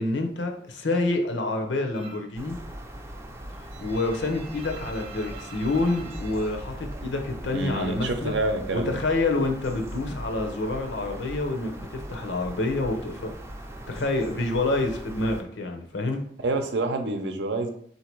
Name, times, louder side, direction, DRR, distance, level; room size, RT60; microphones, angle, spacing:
voice 1, 0.0-2.6 3.8-8.4 8.7-13.3 13.9-16.2, left 2 dB, 85° left, 4 dB, 0.8 m, -27 dB
sound 1, 1.9-2.4 2.7-7.6 7.9-8.9 9.2-12.0, right 4 dB, 30° right, 0.8 m, -47 dB
sound 2, 2.4-15.4, right 1 dB, 15° right, 0.4 m, -40 dB
voice 2, 7.5-9.0 16.4-17.7, right 2 dB, 75° right, 6 dB, 0.6 m, -27 dB
3.8 x 2.8 x 4.5 m, 0.64 s
head